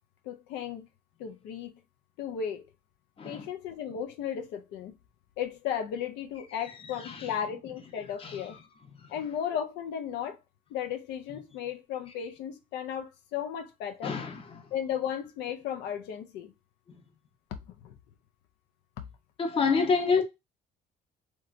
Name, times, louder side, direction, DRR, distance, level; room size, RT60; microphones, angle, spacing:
voice 1, 0.2-0.9 1.2-1.7 2.2-2.6 3.2-5.0 5.4-8.5 9.1-10.4 10.7-14.1 14.7-16.5 17.8-17.9, left 8 dB, 85° left, 0.5 m, -35 dB
voice 2, 3.2-3.5 6.9-7.3 8.2-8.4 8.9-9.1 14.0-14.7 19.4-20.2, left 5 dB, 35° left, 0.7 m, -28 dB
2.9 x 2.2 x 2.4 m
cardioid pair, 110°, 17 cm